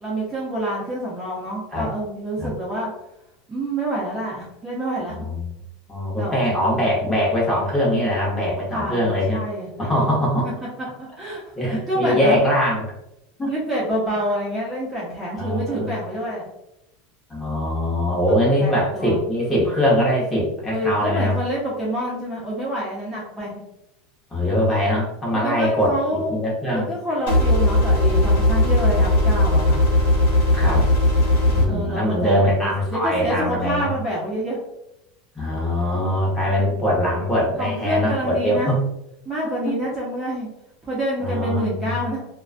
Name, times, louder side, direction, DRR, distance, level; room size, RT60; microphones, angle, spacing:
voice 1, 0.0-2.9 3.5-5.2 6.2-6.9 8.7-9.9 11.0-11.4 11.7-12.4 13.5-16.5 18.4-19.2 20.7-23.6 25.3-26.4 26.7-29.8 31.7-34.6 37.6-38.7 39.3-40.5 40.9-42.3, equal, 15° right, -6 dB, 0.6 m, -27 dB
voice 2, 5.2-5.5 5.9-9.4 9.8-10.5 11.5-12.9 13.4-13.5 15.3-16.0 17.3-21.3 24.3-26.9 30.5-30.9 31.5-33.9 35.3-38.8 41.2-42.0, equal, 10° left, -5 dB, 0.9 m, -22 dB
sound 1, 27.3-31.7, left 1 dB, 80° left, 1.1 m, -17 dB
2.3 x 2.2 x 2.4 m, 0.86 s
supercardioid pair, 140°, 0 cm